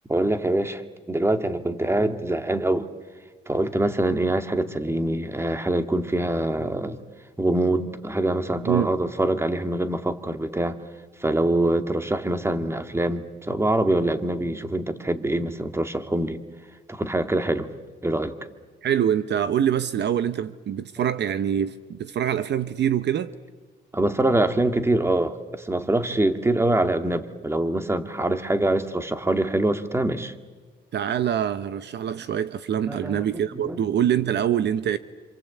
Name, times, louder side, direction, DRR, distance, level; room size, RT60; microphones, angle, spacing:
voice 1, 0.1-0.8 1.1-2.9 3.5-7.0 7.4-10.8 11.2-16.4 16.9-17.7 18.0-18.4 23.9-30.3 32.9-33.2 33.5-33.8, right 1 dB, 15° right, 1.9 m, -24 dB
voice 2, 18.8-23.3 30.9-35.0, right 9 dB, 60° right, 0.9 m, -24 dB
26.5 x 26.0 x 8.3 m
cardioid pair, 90°, 20 cm